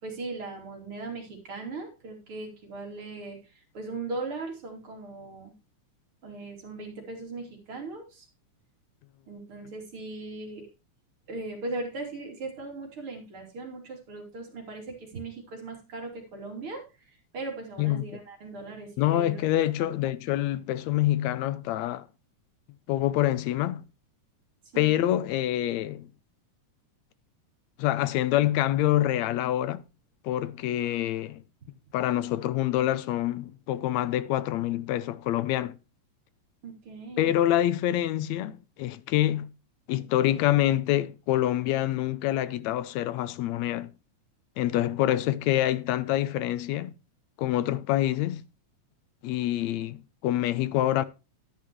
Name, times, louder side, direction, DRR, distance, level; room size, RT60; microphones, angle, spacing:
voice 1, 0.0-5.5 6.2-8.3 9.3-10.7 11.3-19.4 19.8-19.9 24.7-24.9 36.6-37.3, right 3 dB, 45° right, 3.8 m, -39 dB
voice 2, 17.8-18.1 19.0-22.1 22.9-23.8 24.8-26.1 27.8-29.8 30.2-31.4 31.9-35.8 37.2-39.5 39.9-43.9 44.6-46.9 47.4-48.4 49.2-51.0, left 13 dB, 75° left, 1.9 m, -26 dB
12.0 x 10.0 x 3.1 m
omnidirectional pair, 3.4 m